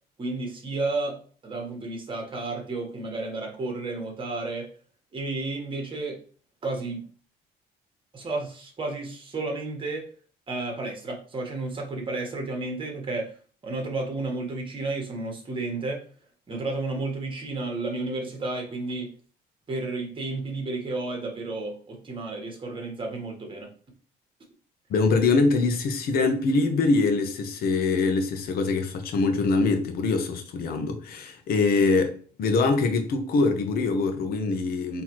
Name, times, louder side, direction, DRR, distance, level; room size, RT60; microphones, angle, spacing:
voice 1, 0.2-4.7 5.1-6.2 6.6-7.0 8.1-10.1 10.5-13.3 13.6-16.0 16.5-19.1 19.7-23.7, right 2 dB, 30° right, 1.4 m, -32 dB
voice 2, 24.9-35.0, left 3 dB, 65° left, 0.9 m, -24 dB
4.1 x 3.0 x 3.0 m
cardioid pair, 110°, 17 cm